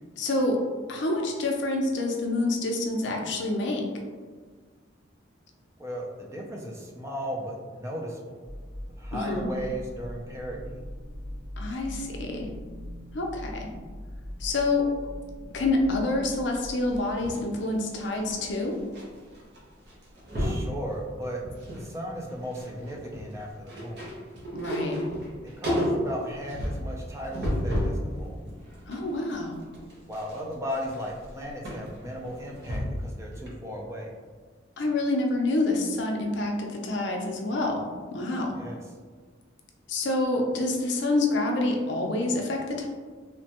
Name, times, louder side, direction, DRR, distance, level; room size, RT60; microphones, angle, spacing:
voice 1, 0.2-0.6 0.9-3.9 9.1-9.5 11.6-12.5 13.1-13.7 14.4-14.9 15.5-18.8 24.5-25.0 28.9-29.6 34.8-38.6 39.9-42.9, left 2 dB, 65° left, 2 dB, 0.5 m, -27 dB
voice 2, 5.8-8.4 9.0-10.8 20.4-21.4 21.7-24.1 25.4-28.5 30.1-34.1 38.5-38.8, equal, 15° right, -1 dB, 0.3 m, -36 dB
sound 1, 8.4-17.0, equal, 40° right, 1.2 m, -41 dB
sound 2, 16.9-19.0 19.3-19.6 19.9-20.7 21.2-21.9 22.2-28.0 28.5-33.1 33.5-33.6, equal, 60° right, 0.7 m, -32 dB
3.2 x 2.1 x 2.8 m, 1.5 s
head